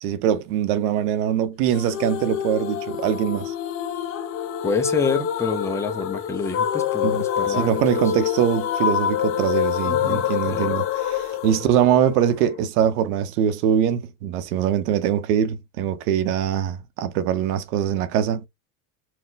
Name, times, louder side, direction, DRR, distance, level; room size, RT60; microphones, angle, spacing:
voice 1, 0.0-3.5 7.0-18.4, right 9 dB, 75° right, 0.9 m, -23 dB
sound 1, 1.7-12.7, left 9 dB, 30° left, 0.8 m, -26 dB
voice 2, 4.6-7.8 9.9-10.8, left 5 dB, 5° left, 0.3 m, -27 dB
4.4 x 2.2 x 3.8 m
supercardioid pair, 135°, 46 cm